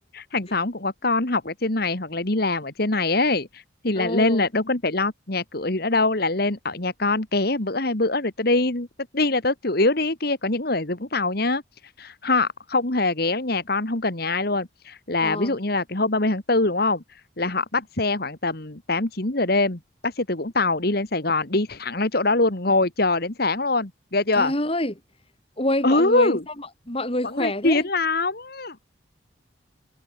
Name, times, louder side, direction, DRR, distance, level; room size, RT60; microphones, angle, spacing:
voice 1, 0.1-8.9 9.1-11.6 12.0-17.0 17.4-24.5 25.8-26.4 27.3-28.9, left 2 dB, 50° left, 2.0 m, -23 dB
voice 2, 3.9-4.5 15.2-15.6 24.4-24.9 25.6-27.9, left 1 dB, 30° left, 3.6 m, -27 dB
head